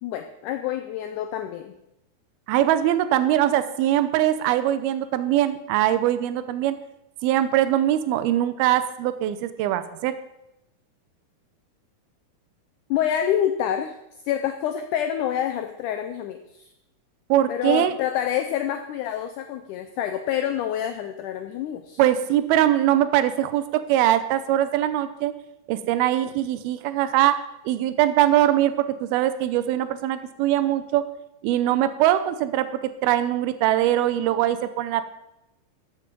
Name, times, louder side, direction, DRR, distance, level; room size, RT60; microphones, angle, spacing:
voice 1, 0.0-1.7 12.9-14.0 14.3-16.7 17.5-22.0, left 10 dB, 85° left, 8 dB, 1.7 m, -27 dB
voice 2, 2.5-6.8 7.2-10.2 17.3-17.9 22.0-25.3 25.7-31.0 31.4-35.1, right 12 dB, 85° right, 12 dB, 2.5 m, -22 dB
13.0 x 7.2 x 5.2 m, 0.88 s
omnidirectional pair, 4.4 m